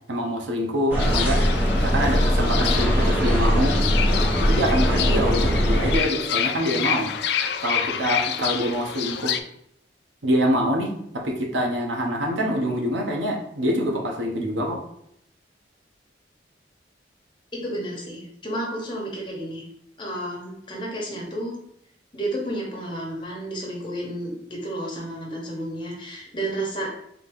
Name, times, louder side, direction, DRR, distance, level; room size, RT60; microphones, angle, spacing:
voice 1, 0.1-1.4 1.7-3.8 4.4-7.1 7.6-9.4 10.2-14.8, equal, 90° right, 1 dB, 0.9 m, -25 dB
sound 1, 0.9-6.0, equal, 10° right, 0.9 m, -21 dB
Fowl / Bird, 1.0-9.4, left 9 dB, 60° left, 0.3 m, -28 dB
voice 2, 17.5-19.6 20.0-21.5 22.1-26.9, right 1 dB, 25° left, -3 dB, 1.1 m, -31 dB
4.0 x 2.8 x 3.5 m, 0.73 s
head